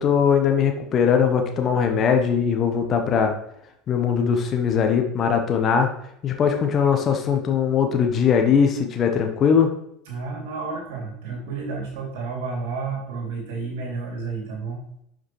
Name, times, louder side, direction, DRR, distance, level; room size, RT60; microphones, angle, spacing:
voice 1, 0.0-3.3 3.9-5.9 6.2-9.7, left 7 dB, 35° left, 4 dB, 1.0 m, -20 dB
voice 2, 10.1-14.8, right 4 dB, 60° right, -1 dB, 2.8 m, -31 dB
11.0 x 5.1 x 3.1 m, 0.75 s
figure-of-eight pair, 70°, 0 cm